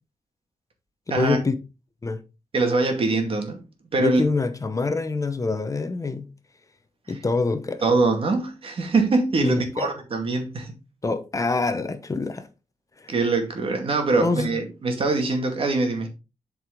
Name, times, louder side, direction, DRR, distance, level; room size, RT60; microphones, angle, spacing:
voice 1, 1.2-1.5 2.0-2.2 4.0-6.3 7.1-7.8 9.4-9.9 11.0-12.5 13.0-13.1 14.2-14.6, left 3 dB, 25° left, 1.0 m, -25 dB
voice 2, 2.5-3.6 3.9-4.2 7.8-10.7 13.1-16.1, right 3 dB, 50° right, 2.2 m, -23 dB
7.9 x 4.9 x 3.9 m
wide cardioid pair, 110°, 12 cm